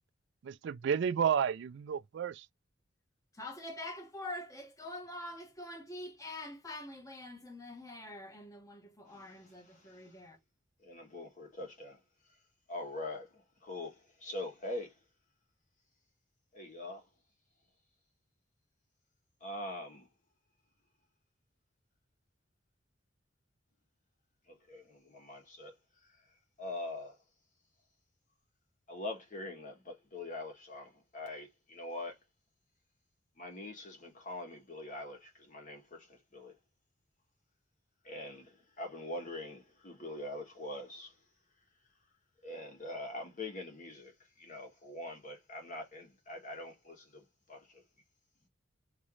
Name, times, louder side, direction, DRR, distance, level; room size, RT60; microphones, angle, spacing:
voice 1, 0.4-2.5, right 7 dB, 65° right, 0.3 m, -31 dB
voice 2, 3.3-10.4, left 1 dB, 15° left, 1.1 m, -45 dB
voice 3, 9.1-10.0 10.8-12.0 12.7-14.9 16.5-17.0 19.4-20.1 24.5-25.8 26.1-26.2 26.6-27.2 28.9-32.2 33.4-36.5 38.0-41.1 42.4-47.8, left 1 dB, 40° left, 1.5 m, -43 dB
3.7 x 3.0 x 3.1 m
head